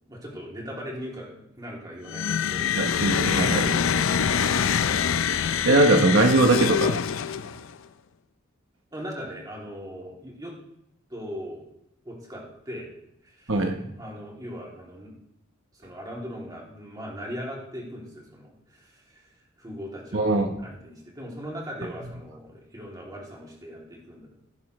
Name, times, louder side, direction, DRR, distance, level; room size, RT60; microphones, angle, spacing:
voice 1, 0.1-2.7 3.2-4.8 8.9-10.5 11.1-11.7 12.0-12.9 13.2-13.6 14.0-15.1 15.7-19.3 19.6-20.3 20.6-24.3, equal, 20° right, -3 dB, 2.8 m, -39 dB
sound 1, 2.1-7.7, left 8 dB, 75° left, 0.5 m, -25 dB
voice 2, 2.8-3.7 5.6-7.0 13.5-13.8 20.1-20.5, right 2 dB, 65° right, 3 dB, 1.0 m, -20 dB
16.5 x 7.9 x 3.2 m, 0.78 s
head